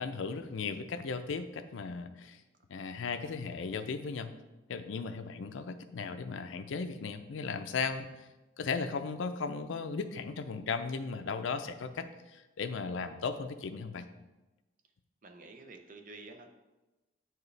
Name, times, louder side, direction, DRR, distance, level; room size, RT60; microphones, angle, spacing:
voice 1, 0.0-2.4 2.7-4.3 4.7-8.3 8.6-14.1, left 5 dB, 80° left, 9 dB, 0.5 m, -36 dB
voice 2, 15.2-16.5, right 3 dB, 45° right, 5 dB, 0.6 m, -49 dB
7.9 x 4.7 x 3.2 m, 1.1 s
head